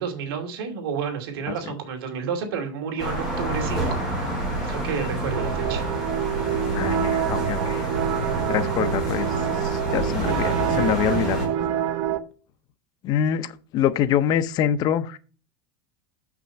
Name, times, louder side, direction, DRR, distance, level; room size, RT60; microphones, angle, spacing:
voice 1, 0.0-4.0 4.6-5.8, right 6 dB, 85° right, 2.6 m, -30 dB
sound 1, 3.0-11.5, right 1 dB, 5° right, 4.2 m, -28 dB
sound 2, 5.3-12.2, right 10 dB, 50° right, 0.9 m, -27 dB
voice 2, 6.7-7.9 8.4-11.5 13.0-15.2, left 9 dB, 35° left, 0.7 m, -25 dB
6.9 x 6.0 x 5.4 m
supercardioid pair, 165°, 12 cm